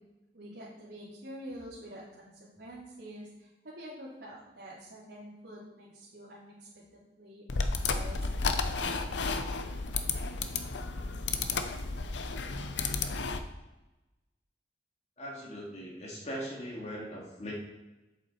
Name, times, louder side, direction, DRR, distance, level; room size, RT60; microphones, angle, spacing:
voice 1, 0.3-6.8 7.2-7.4 7.9-8.3 8.6-8.8, right 1 dB, 75° right, -9 dB, 2.8 m, -47 dB
sound 1, 7.5-13.4, left 4 dB, 85° left, 0.7 m, -32 dB
voice 2, 15.2-17.5, equal, 40° left, -2 dB, 2.2 m, -40 dB
7.8 x 7.2 x 4.5 m, 1.0 s
head